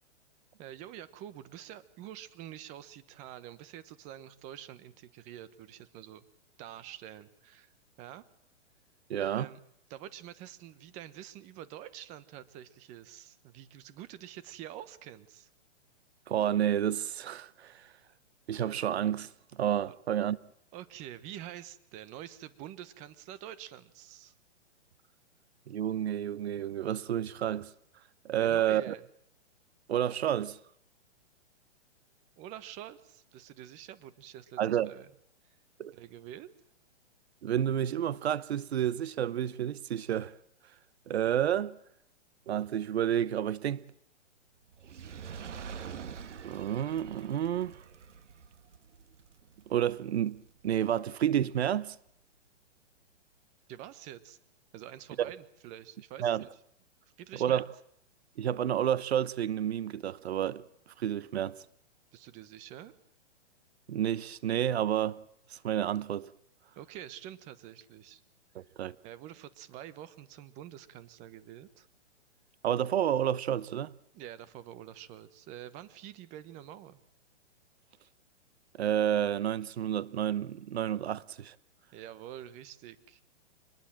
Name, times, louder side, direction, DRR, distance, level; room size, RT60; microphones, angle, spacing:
voice 1, 0.6-6.2 6.6-7.7 8.0-8.2 9.3-9.6 9.9-15.5 19.9-20.0 20.7-24.3 28.4-29.0 32.4-35.1 35.4-35.6 35.9-36.5 53.7-54.4 54.7-56.5 57.2-57.6 62.1-62.9 66.8-68.2 69.0-71.9 74.1-77.0 81.9-83.2, right 11 dB, 20° right, 1.1 m, -47 dB
voice 2, 9.1-9.5 16.3-17.9 18.5-20.4 25.7-27.7 28.2-29.0 29.9-30.6 34.6-34.9 35.8-35.9 37.4-40.3 41.1-41.8 42.5-43.8 46.4-47.8 49.7-52.0 56.2-56.4 57.4-57.7 58.4-60.6 61.0-61.6 63.9-65.2 65.5-66.3 68.5-68.9 72.6-73.9 78.8-81.6, right 10 dB, 65° right, 1.0 m, -30 dB
Fire, 44.7-51.1 51.8-51.9, right 7 dB, 90° right, 1.8 m, -46 dB
25.0 x 20.5 x 7.5 m
hypercardioid pair, 160°, 35 cm